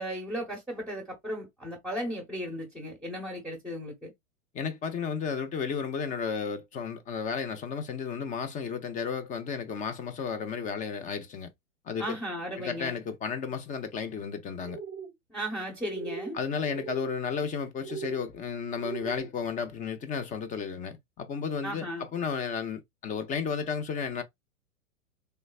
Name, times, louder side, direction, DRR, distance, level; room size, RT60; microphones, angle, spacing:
voice 1, 0.0-4.1 12.0-13.0 15.3-16.4 21.6-22.0, equal, ahead, 1.1 m, -35 dB
voice 2, 4.5-11.5 11.9-12.2 12.6-14.8 16.3-24.2, left 6 dB, 20° left, 0.6 m, -33 dB
sound 1, 14.6-15.1 15.9-16.4 16.6-17.1 17.8-18.3 18.8-19.3, right 6 dB, 25° right, 0.9 m, -39 dB
3.3 x 3.1 x 2.4 m
hypercardioid pair, 110°, 41 cm